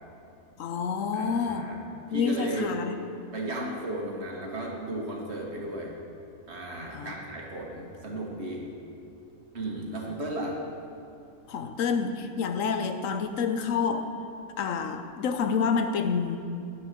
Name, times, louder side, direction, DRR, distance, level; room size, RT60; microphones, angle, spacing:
voice 1, 0.6-1.7 2.1-3.0 6.9-7.1 11.5-14.1 14.6-16.4, left 5 dB, 70° left, 7 dB, 1.1 m, -28 dB
voice 2, 1.1-1.8 2.1-2.8 3.3-5.9 6.5-8.7 9.5-10.6, right 1 dB, 50° right, -1 dB, 1.8 m, -34 dB
10.0 x 6.4 x 6.6 m, 2.7 s
omnidirectional pair, 1.5 m